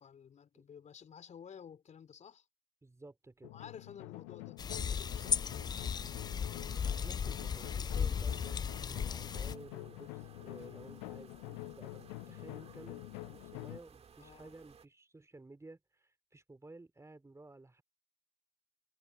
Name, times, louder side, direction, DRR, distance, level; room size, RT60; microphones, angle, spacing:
voice 1, 0.0-2.5 3.5-5.7 14.2-14.5, left 7 dB, 45° left, 3.6 m, -53 dB
voice 2, 2.8-3.6 7.0-17.8, right 2 dB, 15° right, 3.1 m, -54 dB
sound 1, 3.4-13.8, left 30 dB, 70° left, 0.9 m, -47 dB
sound 2, 4.6-9.5, left 7 dB, 25° left, 0.4 m, -36 dB
sound 3, 6.7-14.9, right 6 dB, 35° right, 1.9 m, -59 dB
figure-of-eight pair, 50°, 17 cm